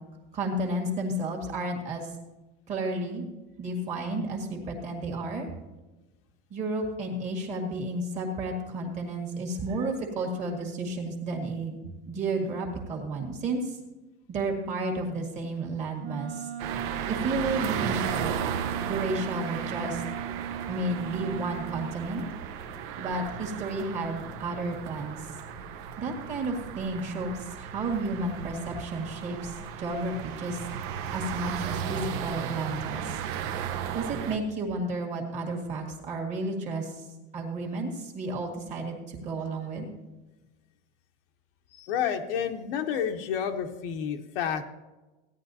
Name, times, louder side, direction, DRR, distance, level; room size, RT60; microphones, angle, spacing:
voice 1, 0.3-2.1 2.7-3.3 3.6-5.5 6.5-13.8 14.3-16.5 17.1-18.3 18.8-20.0 20.7-22.2 23.0-25.2 26.0-30.6 31.1-33.2 33.9-37.1 37.3-39.9, right 2 dB, 25° right, 0 dB, 1.8 m, -32 dB
Wind instrument woodwind instrument, 16.0-22.0, right 9 dB, 80° right, 1.3 m, -38 dB
sound 1, 16.6-34.4, right 8 dB, 45° right, 0.8 m, -35 dB
voice 2, 41.7-44.6, left 8 dB, 65° left, 5 dB, 1.1 m, -30 dB
16.0 x 10.0 x 2.8 m, 1.1 s
supercardioid pair, 180°, 30 cm